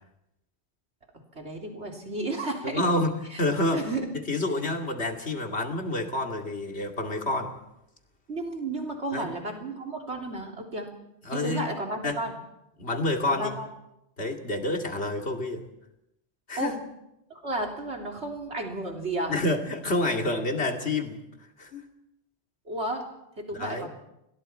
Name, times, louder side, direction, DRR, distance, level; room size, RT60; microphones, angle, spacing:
voice 1, 1.4-2.9 3.3-3.5 3.7-4.1 8.3-10.9 11.3-12.4 13.3-13.7 16.6-16.7 17.3-19.3 22.7-23.1 23.4-23.9, right 2 dB, 85° right, 1 dB, 3.7 m, -32 dB
voice 2, 2.7-3.8 4.1-7.5 9.1-9.3 11.2-11.6 12.0-12.2 12.8-13.5 14.2-15.6 16.5-16.8 19.3-21.2 21.6-21.8 23.5-23.9, left 2 dB, 75° left, 3 dB, 2.8 m, -28 dB
30.0 x 21.5 x 4.4 m, 0.85 s
omnidirectional pair, 1.1 m